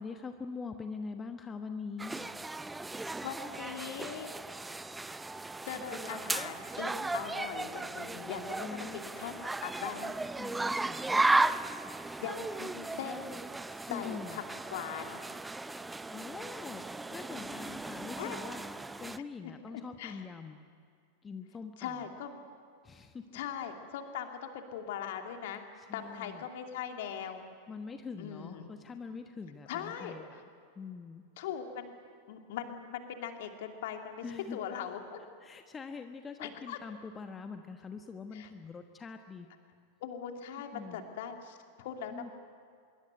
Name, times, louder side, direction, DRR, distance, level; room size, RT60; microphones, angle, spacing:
voice 1, 0.0-2.3 8.5-9.0 10.4-11.2 13.9-14.4 16.1-16.8 17.1-18.6 19.0-20.6 21.2-22.1 22.8-23.4 25.8-26.5 27.7-30.4 30.8-31.2 34.2-35.0 35.4-39.5 40.7-41.1 42.1-42.3, left 5 dB, 20° left, 7 dB, 1.2 m, -44 dB
sound 1, 2.0-19.2, right 2 dB, 10° right, 0.7 m, -35 dB
voice 2, 3.2-4.3 5.6-9.3 9.6-10.2 12.2-13.3 13.9-14.4 14.7-15.2 18.2-18.4 19.4-20.2 21.8-22.4 23.3-25.6 25.9-27.4 28.2-28.7 29.7-30.2 31.4-31.9 32.3-34.2 34.5-35.2 36.4-36.8 38.3-38.5 40.0-42.3, left 8 dB, 55° left, 4 dB, 2.7 m, -40 dB
25.0 x 22.5 x 9.2 m, 2.3 s
figure-of-eight pair, 90°, 0 cm